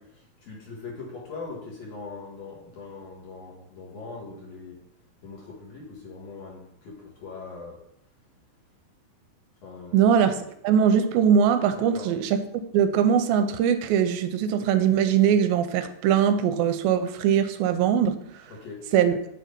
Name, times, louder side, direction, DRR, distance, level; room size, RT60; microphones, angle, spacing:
voice 1, 0.0-4.8 5.2-7.8 9.6-10.0 11.7-12.1 18.5-18.9, left 4 dB, 55° left, -3 dB, 2.2 m, -41 dB
voice 2, 9.9-10.4 10.6-12.4 12.7-18.2 18.9-19.2, right 8 dB, 85° right, 8 dB, 2.4 m, -21 dB
6.6 x 3.8 x 5.1 m, 0.75 s
omnidirectional pair, 4.2 m